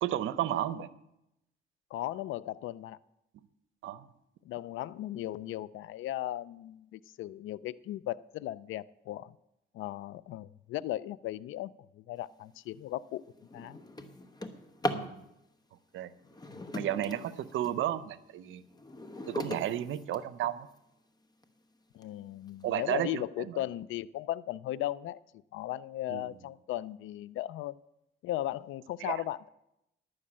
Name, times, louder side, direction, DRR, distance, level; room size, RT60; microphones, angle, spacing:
voice 1, 0.0-0.9 3.8-4.1 14.9-15.2 15.9-16.1 16.7-18.6 19.3-20.7 22.6-23.6 26.1-26.3 29.0-29.2, right 12 dB, 80° right, 15 dB, 0.7 m, -33 dB
voice 2, 1.9-3.0 4.4-9.3 9.7-13.2 13.5-13.8 16.5-16.6 21.9-25.2 25.5-27.8 28.2-29.5, left 14 dB, 80° left, 20 dB, 0.4 m, -37 dB
Drawer open or close, 12.5-12.7 13.2-15.1 16.2-17.8 18.3-20.8 21.4-21.5 22.0-22.1 22.5-22.9, left 1 dB, 20° left, 1.0 m, -39 dB
11.0 x 6.5 x 8.6 m, 0.86 s
cardioid pair, 90°, 20 cm